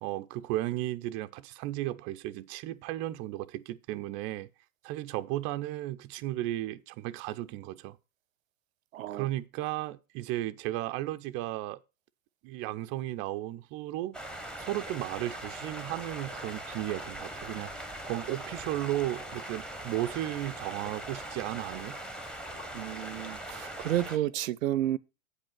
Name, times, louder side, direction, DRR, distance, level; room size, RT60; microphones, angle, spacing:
voice 1, 0.0-4.5 4.8-8.0 9.1-11.8 12.4-17.7 18.1-22.0, right 15 dB, 30° right, 0.5 m, -35 dB
voice 2, 8.9-9.3 22.7-25.0, right 13 dB, 75° right, 0.6 m, -31 dB
sound 1, 14.1-24.2, right 1 dB, ahead, 1.0 m, -41 dB
8.3 x 5.3 x 5.9 m
hypercardioid pair, 110°, 41 cm